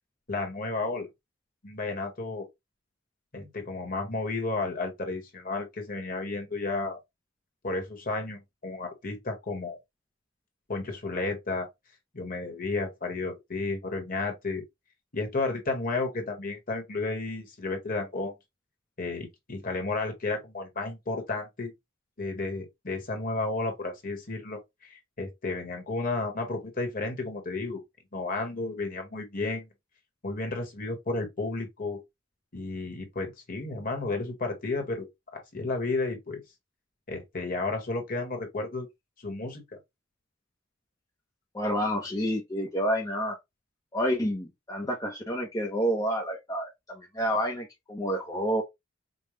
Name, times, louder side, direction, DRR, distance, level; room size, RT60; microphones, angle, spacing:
voice 1, 0.3-1.1 1.6-2.5 3.3-7.0 7.6-9.8 10.7-11.7 12.1-14.6 15.1-18.3 19.0-21.7 22.2-27.8 28.1-29.7 30.2-32.0 32.5-35.1 35.3-36.4 37.1-38.9 39.2-39.6 44.8-44.9, left 3 dB, 45° left, 1.4 m, -32 dB
voice 2, 41.5-43.4 43.9-48.6, equal, 20° left, 0.8 m, -29 dB
5.3 x 2.3 x 3.2 m
head